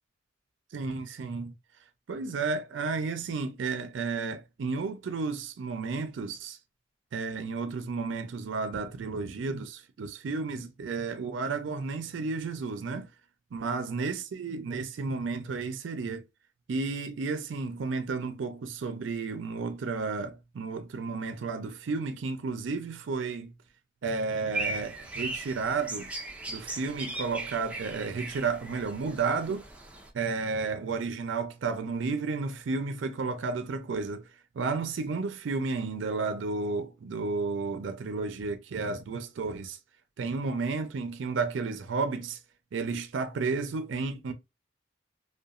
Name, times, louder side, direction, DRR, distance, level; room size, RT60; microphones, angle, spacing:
voice 1, 0.7-1.5 2.1-6.6 7.1-13.1 13.5-16.2 16.7-23.5 24.0-26.1 26.5-29.6 30.1-34.2 34.5-39.8 40.2-42.4 42.7-44.3, right 4 dB, 80° right, 0.4 m, -32 dB
sound 1, 24.5-30.1, right 2 dB, 5° right, 0.4 m, -38 dB
2.8 x 2.2 x 2.3 m
head